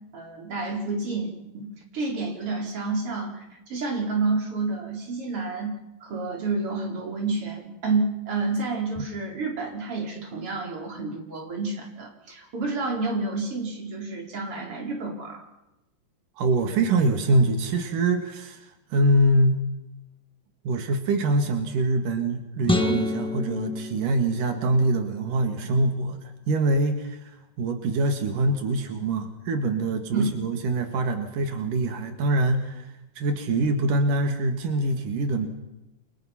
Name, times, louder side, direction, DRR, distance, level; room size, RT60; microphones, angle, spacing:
voice 1, 0.1-15.4 30.1-30.3, right 3 dB, 45° right, 1 dB, 5.4 m, -29 dB
voice 2, 16.4-19.6 20.7-35.5, right 2 dB, 90° right, 6 dB, 3.6 m, -24 dB
sound 1, 22.6-25.0, left 2 dB, 5° left, 0.7 m, -28 dB
29.5 x 25.0 x 5.9 m, 0.95 s
omnidirectional pair, 3.6 m